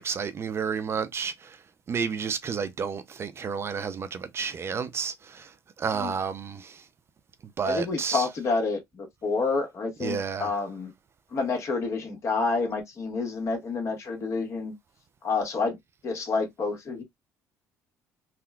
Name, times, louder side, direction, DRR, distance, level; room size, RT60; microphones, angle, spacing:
voice 1, 0.0-1.6 1.9-5.5 5.8-6.8 7.6-8.3 10.0-10.5, right 6 dB, 40° right, 0.4 m, -31 dB
voice 2, 7.6-10.9 11.3-14.7 15.2-15.8 16.0-17.0, left 4 dB, 45° left, 1.4 m, -28 dB
3.5 x 2.2 x 2.3 m
supercardioid pair, 75°, 7 cm